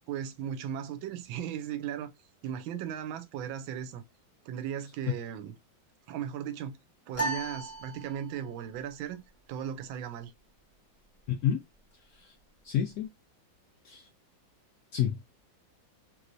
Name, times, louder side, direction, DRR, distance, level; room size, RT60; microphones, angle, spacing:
voice 1, 0.1-2.1 2.4-4.0 4.4-5.6 6.1-6.8 7.1-9.2 9.5-10.3, right 9 dB, 90° right, 1.4 m, -37 dB
sound 1, 7.1-8.6, right 2 dB, 10° left, 1.0 m, -35 dB
voice 2, 11.3-11.6 12.2-12.3 12.6-13.1 13.8-14.1 14.9-15.2, left 9 dB, 80° left, 0.8 m, -29 dB
3.2 x 3.1 x 2.5 m
omnidirectional pair, 2.1 m